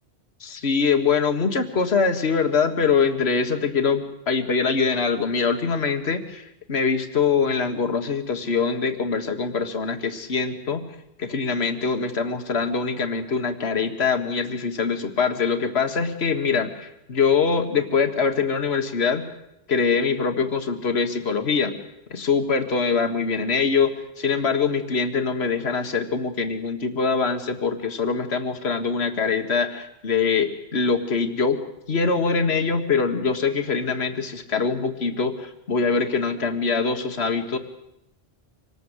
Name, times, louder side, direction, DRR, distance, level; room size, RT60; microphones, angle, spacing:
voice 1, 0.4-10.9 11.2-19.3 19.7-21.8 22.1-31.6 31.9-37.6, left 5 dB, 75° left, 7 dB, 1.8 m, -23 dB
25.5 x 19.5 x 8.1 m, 0.85 s
omnidirectional pair, 1.1 m